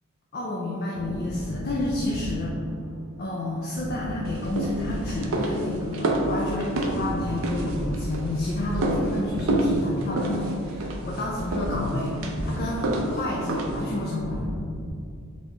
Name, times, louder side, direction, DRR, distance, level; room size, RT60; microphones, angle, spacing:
voice 1, 0.3-2.5 3.2-12.1 12.4-14.4, left 1 dB, 45° left, -4 dB, 0.5 m, -30 dB
sound 1, 0.9-3.0 3.3-5.9 6.1-8.1 8.5-10.4 10.7-13.2 13.5-14.9, equal, 15° left, 1.3 m, -36 dB
sound 2, 4.2-14.0, right 1 dB, 65° right, 0.5 m, -29 dB
4.1 x 3.3 x 3.1 m, 2.3 s
head